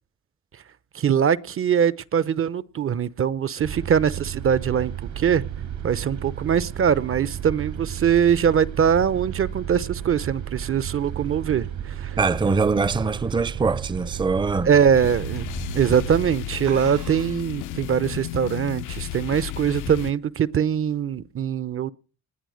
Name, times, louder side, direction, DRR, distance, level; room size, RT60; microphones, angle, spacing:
voice 1, 0.9-5.4 5.8-12.2 14.6-15.5 15.7-21.9, right 8 dB, 45° right, 0.8 m, -22 dB
sound 1, 3.6-16.3, right 9 dB, 70° right, 5.3 m, -33 dB
sound 2, 10.5-13.6 14.0-14.3 14.7-14.8 15.6-15.9 16.2-16.3 16.6-17.6, right 11 dB, 90° right, 1.2 m, -44 dB
voice 2, 12.1-14.7, right 4 dB, 15° right, 0.7 m, -23 dB
sound 3, 14.9-20.1, left 14 dB, 85° left, 0.7 m, -33 dB
20.0 x 9.2 x 6.4 m
cardioid pair, 90°, 30 cm